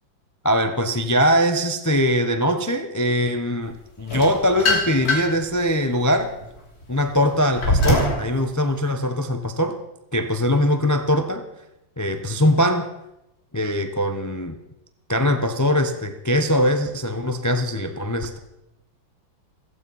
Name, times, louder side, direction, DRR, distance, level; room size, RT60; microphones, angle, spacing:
voice 1, 0.4-6.3 6.9-9.8 10.1-11.4 12.0-12.9 13.5-14.6 15.1-18.4, equal, 20° left, 7 dB, 0.4 m, -21 dB
sound 1, 4.1-5.4 6.0-8.2, left 1 dB, 50° left, 3.8 m, -22 dB
16.5 x 15.0 x 5.6 m, 0.90 s
omnidirectional pair, 2.1 m